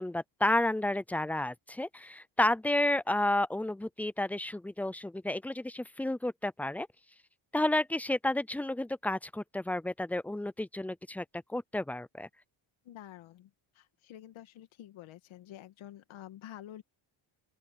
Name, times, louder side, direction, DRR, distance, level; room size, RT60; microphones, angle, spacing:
voice 1, 0.0-6.9 7.5-12.3, left 1 dB, 5° left, 0.4 m, -31 dB
voice 2, 12.8-16.8, left 12 dB, 75° left, 2.3 m, -49 dB
open air
cardioid pair, 110°, 47 cm